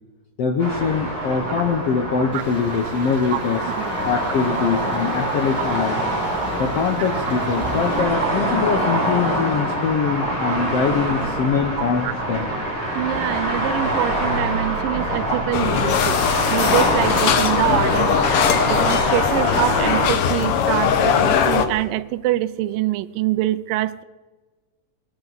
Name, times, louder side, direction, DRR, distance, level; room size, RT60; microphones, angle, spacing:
voice 1, 0.4-3.6 4.0-6.0 6.6-12.5, left 6 dB, 70° left, 4 dB, 1.4 m, -23 dB
sound 1, 0.6-20.1, right 1 dB, 55° left, 7.9 m, -25 dB
sound 2, 2.3-8.0, right 1 dB, 10° right, 5.0 m, -41 dB
voice 2, 11.8-12.1 12.9-16.2 16.5-18.2 18.7-24.0, right 15 dB, 85° right, 15 dB, 2.3 m, -25 dB
sound 3, 15.5-21.7, left 8 dB, 90° left, 1.2 m, -20 dB
21.5 x 13.0 x 4.0 m, 1.3 s
omnidirectional pair, 3.9 m